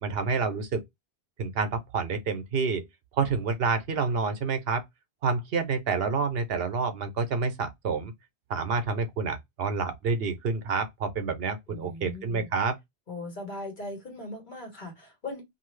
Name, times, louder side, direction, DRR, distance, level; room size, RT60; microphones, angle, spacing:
voice 1, 0.0-0.8 1.4-2.8 3.1-4.8 5.2-8.1 8.5-12.8, right 4 dB, 70° right, 0.9 m, -28 dB
voice 2, 11.7-12.5 13.1-15.4, left 2 dB, 50° left, 1.5 m, -39 dB
2.7 x 2.6 x 3.1 m
omnidirectional pair, 1.1 m